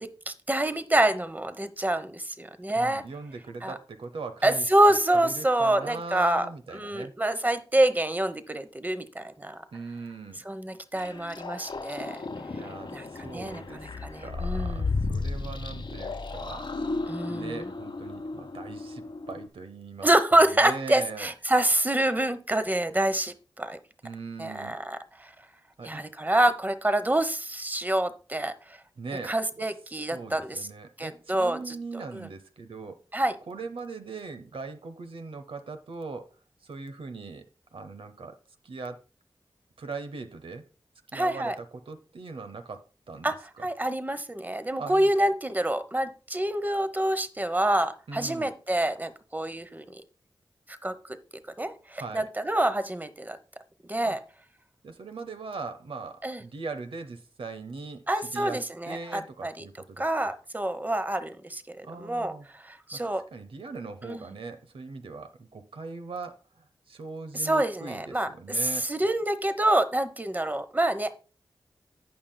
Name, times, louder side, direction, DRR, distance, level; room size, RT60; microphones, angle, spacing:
voice 1, 0.0-3.0 3.6-3.8 4.4-6.5 6.7-9.6 10.4-12.2 12.9-14.9 17.1-17.7 20.0-23.8 24.4-25.3 25.8-28.5 29.2-30.7 31.0-32.3 33.1-33.4 41.1-41.6 43.2-50.0 50.7-51.0 51.6-53.4 53.8-54.2 56.2-56.4 58.1-59.7 60.0-63.2 64.0-64.2 67.3-71.2, right 1 dB, 20° right, 0.9 m, -27 dB
voice 2, 2.8-4.7 5.1-7.1 9.7-10.4 12.5-16.7 17.3-21.3 24.0-24.8 25.8-26.0 29.0-29.3 29.9-33.0 33.5-36.3 36.6-37.4 37.7-38.4 38.6-39.0 39.8-40.6 41.1-43.3 44.8-45.1 48.1-48.5 52.0-52.3 54.0-54.2 54.8-58.0 58.3-58.6 58.8-60.3 61.8-62.5 62.9-63.0 63.3-68.9, right 4 dB, 80° right, 0.8 m, -40 dB
sound 1, 10.9-19.5, left 3 dB, 65° left, 1.1 m, -34 dB
16.5 x 5.6 x 2.2 m
cardioid pair, 45°, 9 cm